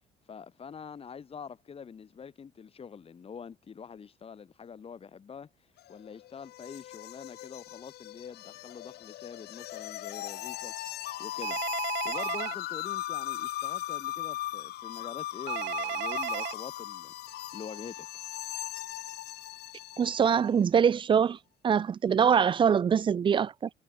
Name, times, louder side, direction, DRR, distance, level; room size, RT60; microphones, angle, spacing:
voice 1, 0.3-5.5 5.9-10.7 11.2-11.6 12.0-18.2, left 6 dB, 35° left, 2.7 m, -45 dB
sound 1, 5.8-20.4, left 15 dB, 75° left, 2.1 m, -38 dB
Telephone, 11.4-12.5 15.5-16.5, right 20 dB, 85° right, 1.0 m, -34 dB
voice 2, 20.0-21.4 21.6-23.7, right 7 dB, 30° right, 0.4 m, -24 dB
cardioid pair, 110°, 17 cm